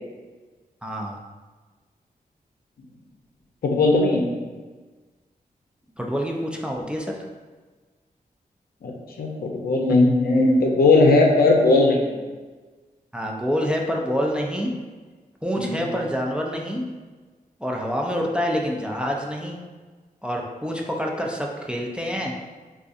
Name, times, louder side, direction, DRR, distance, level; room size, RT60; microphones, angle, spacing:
voice 1, 0.8-1.2 6.0-7.2 13.1-14.7 15.4-16.8 17.6-19.6 20.2-22.3, equal, 5° right, 0 dB, 0.4 m, -27 dB
voice 2, 3.6-4.3 8.8-8.9 9.2-12.2 15.6-15.8, left 2 dB, 75° left, 1 dB, 0.5 m, -18 dB
3.7 x 2.4 x 2.5 m, 1.3 s
cardioid pair, 70°, 16 cm